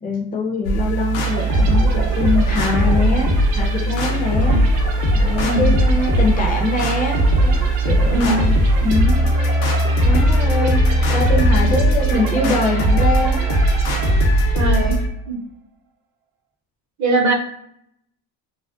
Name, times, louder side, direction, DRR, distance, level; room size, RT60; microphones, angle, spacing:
voice 1, 0.0-4.6 5.1-9.2 10.0-10.8 11.1-13.5, left 3 dB, 15° left, 1 dB, 0.6 m, -23 dB
sound 1, 0.7-15.1, right 1 dB, 65° left, 0.8 m, -18 dB
sound 2, 1.3-14.8, right 5 dB, 85° right, 0.7 m, -33 dB
voice 2, 8.1-8.5 11.1-11.2 11.6-11.7 14.5-15.0 15.3-15.4 17.0-17.3, right 2 dB, 35° right, 1 dB, 0.7 m, -21 dB
2.4 x 2.1 x 2.4 m, 0.74 s
supercardioid pair, 75°, 50 cm